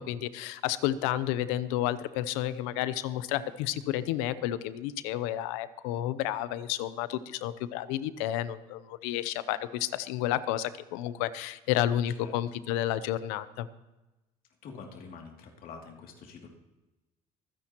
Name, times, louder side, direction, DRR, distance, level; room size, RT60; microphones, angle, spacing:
voice 1, 0.0-13.7, left 12 dB, 85° left, 15 dB, 0.7 m, -31 dB
voice 2, 14.6-16.5, left 5 dB, 55° left, 1 dB, 2.7 m, -46 dB
25.0 x 10.0 x 3.0 m, 1.1 s
supercardioid pair, 100°, 17 cm